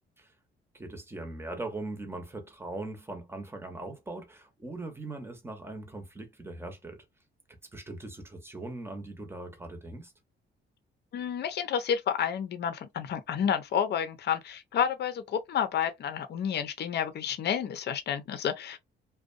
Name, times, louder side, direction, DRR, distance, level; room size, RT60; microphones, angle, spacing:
voice 1, 0.7-7.0 7.7-10.1, right 2 dB, 10° right, 0.9 m, -40 dB
voice 2, 11.1-18.8, left 8 dB, 55° left, 0.6 m, -30 dB
2.5 x 2.2 x 2.5 m
cardioid pair, 90°, 20 cm